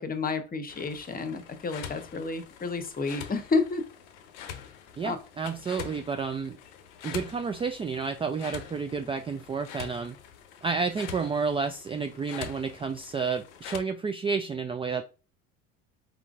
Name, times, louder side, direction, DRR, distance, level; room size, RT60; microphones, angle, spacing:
voice 1, 0.0-3.8 5.0-5.2, left 4 dB, 25° left, 9 dB, 0.8 m, -30 dB
sound 1, 0.7-13.8, left 9 dB, 75° left, 0.7 m, -44 dB
voice 2, 5.0-6.6 7.0-10.2 10.6-15.1, right 5 dB, 15° right, 6 dB, 0.3 m, -30 dB
4.5 x 3.7 x 2.4 m, 0.33 s
hypercardioid pair, 70°, 38 cm